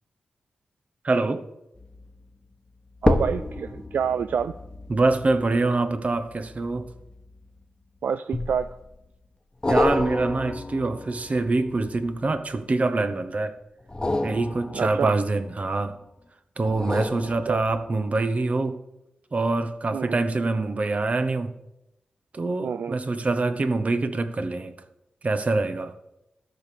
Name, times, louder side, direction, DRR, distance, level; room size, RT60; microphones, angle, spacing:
voice 1, 1.0-1.5 4.9-6.9 9.7-13.6 14.2-15.9 16.6-18.8 19.3-21.5 22.3-24.7 25.2-25.9, right 3 dB, 50° right, 1.0 m, -25 dB
sound 1, 1.8-2.1 3.0-7.6 8.3-8.9 9.6-12.6 13.8-15.9 16.6-18.1 18.5-18.6, left 2 dB, 25° left, 1.1 m, -30 dB
voice 2, 3.0-4.5 8.0-8.7 14.7-15.1 17.5-17.6 19.9-20.2 22.6-23.0, right 7 dB, 75° right, 0.3 m, -27 dB
13.5 x 5.3 x 6.7 m
cardioid pair, 45°, 3 cm